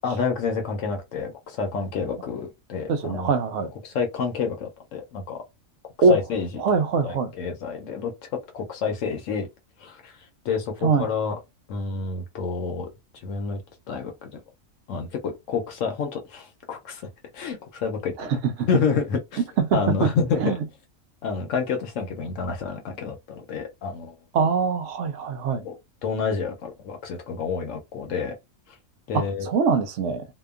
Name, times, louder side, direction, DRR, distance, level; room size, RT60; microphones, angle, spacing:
voice 1, 0.0-3.3 3.8-5.4 6.1-6.5 7.0-8.1 8.5-9.5 9.8-10.2 10.4-11.4 11.7-12.9 13.2-13.6 13.9-14.4 14.9-17.0 17.3-18.3 18.7-19.4 19.7-20.5 21.2-24.1 25.6-25.8 26.0-28.3 29.1-29.5, left 5 dB, 75° left, 1.0 m, -28 dB
voice 2, 2.9-3.7 6.0-6.2 6.6-7.3 10.8-11.1 18.2-18.7 19.6-20.1 20.4-20.6 24.3-25.7 29.1-30.3, right 5 dB, 70° right, 0.8 m, -23 dB
2.8 x 2.2 x 2.3 m
omnidirectional pair, 1.4 m